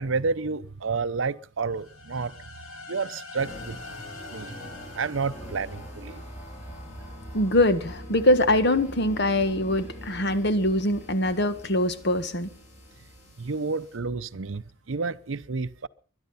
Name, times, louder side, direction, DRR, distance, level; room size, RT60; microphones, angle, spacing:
voice 1, 0.0-2.4 2.9-3.8 4.3-4.5 5.0-6.2 13.4-15.9, right 4 dB, 70° right, 0.7 m, -30 dB
sound 1, 1.7-6.6, left 3 dB, 85° left, 3.3 m, -44 dB
sound 2, 3.4-14.0, equal, 40° left, 7.0 m, -43 dB
voice 2, 7.3-12.5, left 1 dB, 55° left, 1.6 m, -23 dB
22.5 x 11.5 x 5.7 m
head